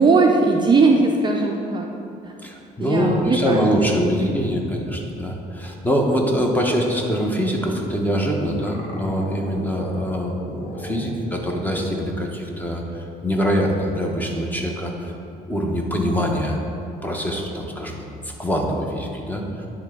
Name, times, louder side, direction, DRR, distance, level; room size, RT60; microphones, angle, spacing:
voice 1, 0.0-1.9 2.8-3.7 4.0-4.1 4.5-4.6, right 3 dB, 25° right, 1 dB, 0.4 m, -18 dB
voice 2, 2.4-15.1 15.5-16.6 17.0-19.7, equal, 10° left, 0 dB, 0.9 m, -24 dB
sound 1, 8.6-11.9 12.2-12.3 13.9-14.0, left 2 dB, 50° left, 0.9 m, -38 dB
9.6 x 3.3 x 3.7 m, 2.8 s
cardioid pair, 110°, 17 cm